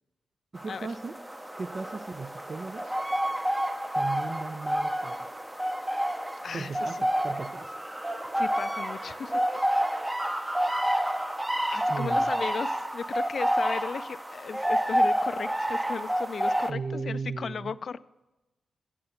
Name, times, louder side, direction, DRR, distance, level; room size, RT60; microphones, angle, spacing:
voice 1, 0.5-1.2 1.6-2.9 3.9-5.2 6.5-7.8 11.9-12.3 16.7-17.7, right 4 dB, 50° right, 9 dB, 0.5 m, -36 dB
sound 1, 0.6-16.7, equal, 15° right, 0.7 m, -29 dB
voice 2, 6.4-6.9 8.4-9.4 10.6-10.9 11.7-18.0, left 6 dB, 65° left, 17 dB, 0.3 m, -36 dB
8.6 x 7.6 x 6.8 m, 1.0 s
supercardioid pair, 50°, 0 cm